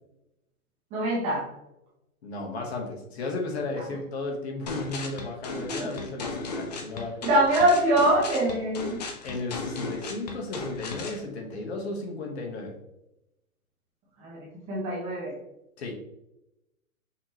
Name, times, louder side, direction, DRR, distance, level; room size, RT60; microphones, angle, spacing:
voice 1, 0.9-1.5 5.5-5.9 7.2-9.0 14.2-15.4, right 1 dB, 15° right, -5 dB, 0.8 m, -24 dB
voice 2, 2.2-7.2 9.2-12.8 15.8-15.9, left 2 dB, 50° left, 1 dB, 1.2 m, -34 dB
sound 1, 4.7-11.2, left 3 dB, 30° left, 0.5 m, -36 dB
5.6 x 3.0 x 2.9 m, 0.86 s
hypercardioid pair, 150°, 42 cm